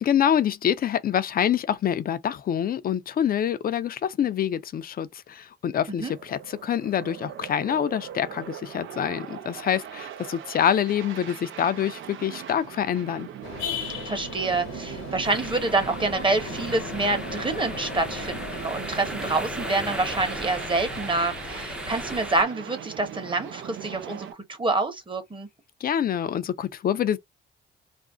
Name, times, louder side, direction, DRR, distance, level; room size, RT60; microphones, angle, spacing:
voice 1, 0.0-13.3 25.8-27.2, left 9 dB, 45° left, 0.5 m, -26 dB
sound 1, 6.0-24.3, right 10 dB, 80° right, 0.6 m, -40 dB
sound 2, 13.4-22.3, left 6 dB, 80° left, 1.0 m, -38 dB
voice 2, 14.0-25.5, right 2 dB, 25° right, 1.0 m, -27 dB
sound 3, 15.2-22.4, right 1 dB, 5° right, 0.6 m, -37 dB
2.5 x 2.1 x 3.5 m
cardioid pair, 90°, 20 cm